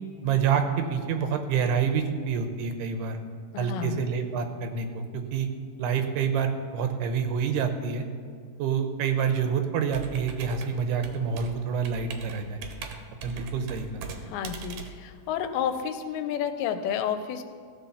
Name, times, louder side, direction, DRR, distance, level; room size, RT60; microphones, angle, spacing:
voice 1, 0.2-3.2 3.6-5.5 5.8-8.1 8.6-12.6 13.2-14.0, right 6 dB, 85° right, 7 dB, 2.9 m, -27 dB
voice 2, 3.5-4.0 14.3-17.4, left 8 dB, 80° left, 8 dB, 2.4 m, -30 dB
Computer keyboard, 9.9-15.8, right 6 dB, 70° right, 2.4 m, -41 dB
16.0 x 6.2 x 7.2 m, 2.1 s
omnidirectional pair, 4.7 m